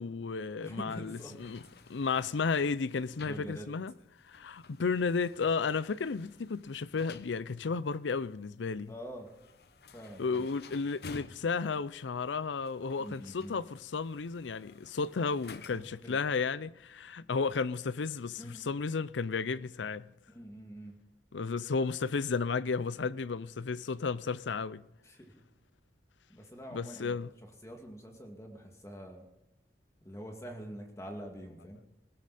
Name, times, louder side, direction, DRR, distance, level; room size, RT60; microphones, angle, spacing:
voice 1, 0.0-1.6 1.9-3.9 4.3-8.9 10.2-13.6 13.9-20.1 21.3-24.8 26.7-27.3, left 4 dB, 90° left, 0.5 m, -33 dB
voice 2, 0.6-1.4 1.7-1.9 3.2-3.7 8.9-9.3 9.9-10.5 13.0-13.6 15.7-16.2 18.4-18.6 20.3-21.0 25.0-25.3 26.3-29.3 30.0-31.8, equal, 15° left, 2.3 m, -45 dB
sound 1, 1.0-16.1, left 4 dB, 60° left, 0.7 m, -54 dB
19.5 x 16.5 x 4.2 m
head